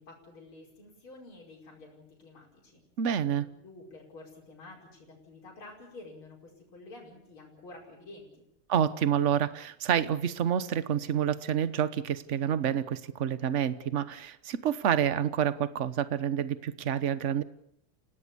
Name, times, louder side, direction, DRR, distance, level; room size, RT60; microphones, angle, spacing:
voice 1, 0.0-2.8 3.4-8.4, left 2 dB, 70° left, -2 dB, 6.0 m, -50 dB
voice 2, 3.0-3.4 8.7-17.4, right 9 dB, 45° right, 14 dB, 1.0 m, -28 dB
29.0 x 17.5 x 6.9 m, 0.73 s
omnidirectional pair, 2.4 m